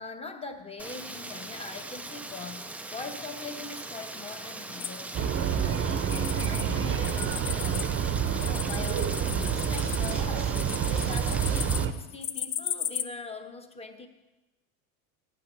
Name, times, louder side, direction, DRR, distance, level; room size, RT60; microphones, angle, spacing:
voice 1, 0.0-7.9 8.4-14.1, left 4 dB, 15° left, 6 dB, 1.1 m, -42 dB
Rain, 0.8-11.9, right 2 dB, 5° right, 0.3 m, -40 dB
sound 1, 4.8-6.6 6.9-13.0, left 10 dB, 45° left, 0.8 m, -36 dB
sound 2, 5.1-11.9, right 8 dB, 30° right, 0.8 m, -28 dB
15.0 x 9.5 x 3.2 m, 1.0 s
supercardioid pair, 95°, 44 cm